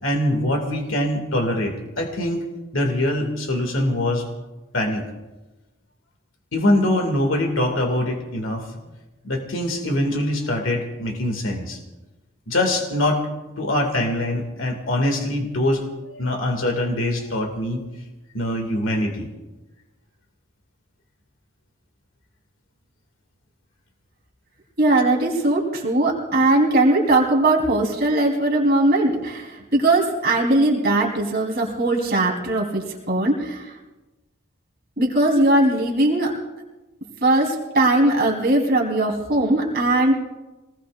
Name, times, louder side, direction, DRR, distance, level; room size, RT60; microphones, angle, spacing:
voice 1, 0.0-2.4 2.7-4.3 4.7-5.0 6.5-8.9 9.2-11.8 12.5-13.3 13.6-17.8 18.3-19.3, left 1 dB, 65° left, 3 dB, 2.3 m, -23 dB
voice 2, 24.8-33.8 35.0-36.3 37.2-40.1, right 2 dB, 50° right, -2 dB, 3.8 m, -19 dB
26.5 x 19.5 x 2.5 m, 1.1 s
head